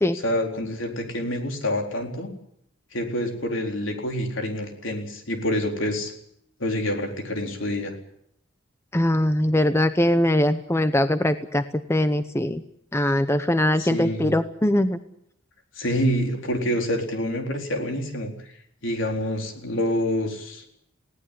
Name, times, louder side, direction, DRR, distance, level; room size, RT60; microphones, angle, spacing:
voice 1, 0.2-2.3 2.9-6.1 6.6-7.9 13.8-14.3 15.8-18.3 18.8-20.6, left 1 dB, 70° left, 3 dB, 4.1 m, -27 dB
voice 2, 8.9-11.6 11.9-12.6 12.9-15.0, left 1 dB, 15° left, 10 dB, 0.8 m, -21 dB
20.5 x 17.5 x 9.9 m, 0.75 s
head